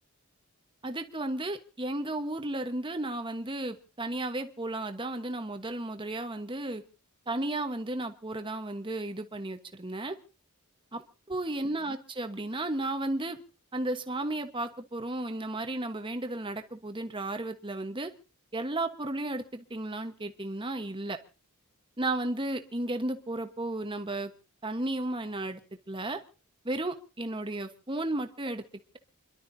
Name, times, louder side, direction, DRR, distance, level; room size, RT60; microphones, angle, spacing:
voice 1, 0.8-6.8 7.3-10.2 10.9-11.0 11.3-13.4 13.7-18.1 18.5-21.2 22.0-24.3 24.6-25.6 25.9-26.2 26.6-28.6, right 2 dB, 20° right, 7 dB, 1.2 m, -33 dB
29.0 x 12.0 x 2.8 m, 0.33 s
head